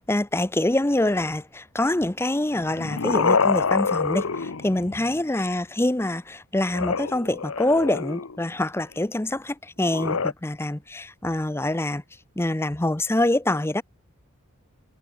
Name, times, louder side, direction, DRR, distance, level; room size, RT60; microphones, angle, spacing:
voice 1, 0.0-12.0 12.4-13.8, left 1 dB, 10° left, 0.6 m, -25 dB
sound 1, 2.5-5.2 6.7-8.4 9.8-10.3, left 5 dB, 70° left, 0.9 m, -26 dB
head